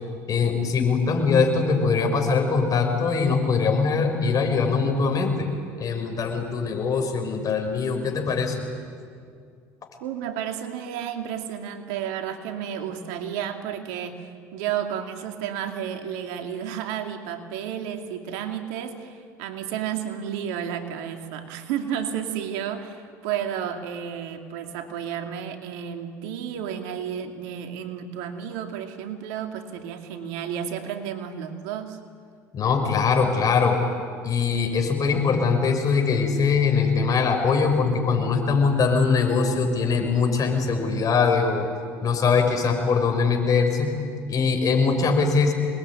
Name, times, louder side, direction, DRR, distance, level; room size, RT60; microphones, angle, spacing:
voice 1, 0.3-5.5 5.8-8.5 32.5-33.8 34.2-41.7 42.0-43.9 44.3-45.5, left 5 dB, 45° left, 4 dB, 6.1 m, -22 dB
voice 2, 10.0-32.0, right 9 dB, 80° right, 5 dB, 2.5 m, -32 dB
26.5 x 21.0 x 9.9 m, 2.2 s
supercardioid pair, 80°, 9 cm